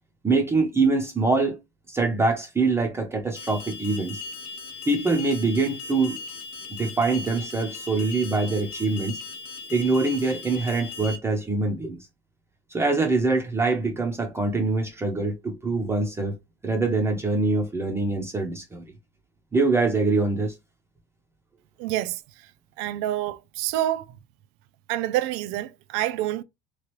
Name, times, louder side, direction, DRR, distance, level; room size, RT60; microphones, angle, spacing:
voice 1, 0.2-1.6 1.9-4.2 4.9-6.2 6.8-9.2 9.7-12.0 12.7-16.3 16.6-18.8 19.5-20.5, right 3 dB, 10° right, 0.6 m, -24 dB
Alarm, 3.4-11.2, left 4 dB, 80° left, 0.8 m, -38 dB
voice 2, 21.8-22.2 22.8-24.2 24.9-26.4, right 13 dB, 70° right, 0.5 m, -27 dB
3.0 x 2.4 x 3.0 m
cardioid pair, 150°, 20 cm